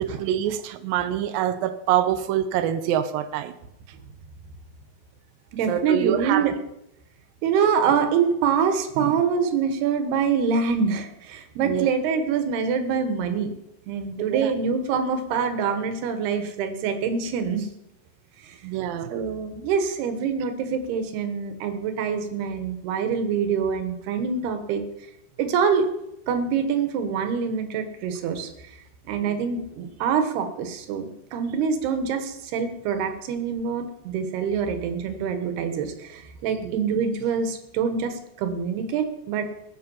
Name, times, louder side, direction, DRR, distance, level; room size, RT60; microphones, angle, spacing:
voice 1, 0.0-3.5 5.7-6.5 9.0-9.1 11.6-11.9 14.3-14.5 18.6-19.1 29.2-29.4 36.6-36.8, right 10 dB, 85° right, 2.0 m, -25 dB
voice 2, 5.5-6.5 7.4-13.5 13.9-17.7 18.4-18.6 19.1-24.8 25.4-25.9 26.3-28.5 29.1-39.5, right 6 dB, 70° right, 3.1 m, -25 dB
20.0 x 7.9 x 5.6 m
omnidirectional pair, 5.2 m